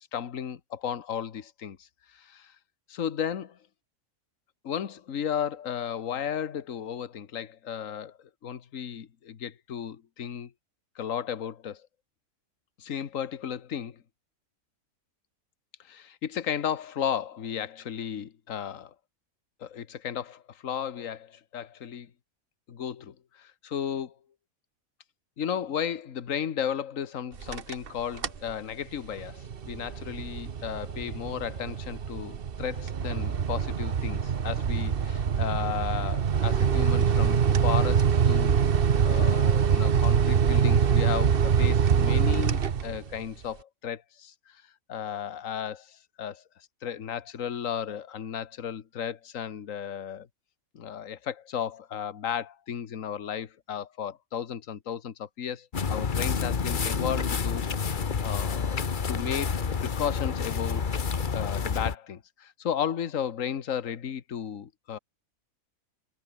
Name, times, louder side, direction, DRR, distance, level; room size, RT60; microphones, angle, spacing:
voice 1, 0.1-1.9 2.1-2.5 2.9-3.6 4.6-8.2 8.4-10.5 11.0-11.8 12.8-14.0 15.8-18.9 19.6-22.1 22.7-24.1 25.4-38.6 39.0-44.6 44.9-46.4 46.8-50.3 50.7-58.8 59.1-59.5 59.8-60.9 61.3-65.0, left 8 dB, 60° left, 1.6 m, -34 dB
sound 1, 27.3-27.9 28.2-28.5 29.0-43.2, right 7 dB, 45° right, 1.0 m, -24 dB
sound 2, 55.7-62.0, left 6 dB, 35° left, 1.1 m, -29 dB
omnidirectional pair, 1.6 m